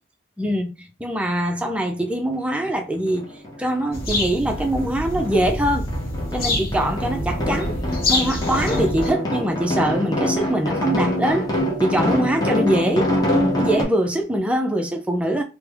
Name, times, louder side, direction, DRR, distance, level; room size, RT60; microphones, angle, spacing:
voice 1, 0.4-3.3 3.6-5.9 6.3-7.7 8.1-11.5 11.8-13.1 13.6-15.4, right 1 dB, 5° right, 0.4 m, -23 dB
sound 1, 2.6-2.7 3.1-4.3 4.5-13.8, left 1 dB, 20° left, 0.8 m, -25 dB
sound 2, 3.9-9.1, left 1 dB, 50° left, 0.9 m, -26 dB
3.2 x 2.0 x 3.4 m
head